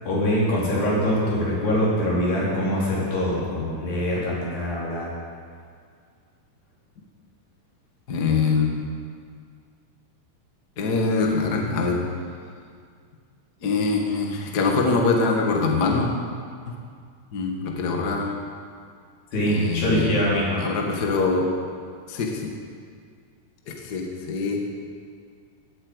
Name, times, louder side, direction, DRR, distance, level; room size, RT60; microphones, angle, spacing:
voice 1, 0.0-5.1 19.3-20.6, equal, 80° left, -6 dB, 6.4 m, -23 dB
voice 2, 8.1-8.8 10.8-12.0 13.6-16.1 16.6-16.7 17.3-18.3 19.5-20.2 20.6-21.5 22.1-22.5 23.7-24.6, left 4 dB, 40° left, 0 dB, 1.5 m, -23 dB
19.5 x 8.8 x 8.1 m, 2.1 s
omnidirectional pair, 4.6 m